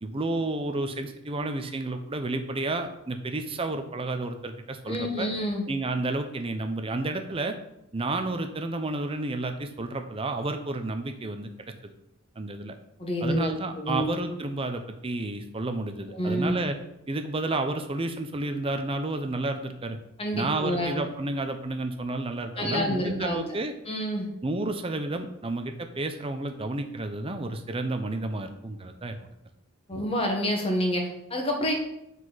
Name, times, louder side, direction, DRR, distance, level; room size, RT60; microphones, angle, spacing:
voice 1, 0.0-5.3 5.7-7.5 7.9-11.7 12.4-12.7 13.2-16.7 17.1-20.0 20.3-23.7 24.4-29.3, right 2 dB, 25° right, 7 dB, 0.6 m, -31 dB
voice 2, 4.9-5.6 13.0-14.1 16.1-16.5 20.2-20.9 22.6-23.4 23.9-24.3 29.9-31.7, equal, 25° left, 1 dB, 1.3 m, -28 dB
7.9 x 4.9 x 4.0 m, 0.86 s
head